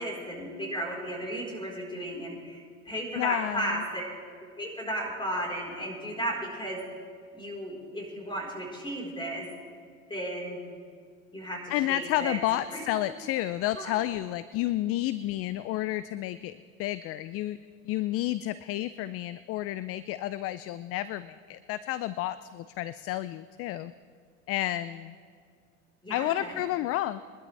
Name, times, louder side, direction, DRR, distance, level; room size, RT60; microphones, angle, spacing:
voice 1, 0.0-4.0 4.6-6.8 7.3-9.4 10.1-10.6 11.3-12.4 12.7-12.8 13.7-13.9 26.0-26.6, right 1 dB, 10° left, -1 dB, 4.4 m, -34 dB
voice 2, 3.2-3.8 11.7-17.6 17.9-23.9 24.5-25.1 26.1-27.2, left 14 dB, 40° left, 16 dB, 0.4 m, -31 dB
22.5 x 12.0 x 3.4 m, 2.1 s
hypercardioid pair, 85°, 38 cm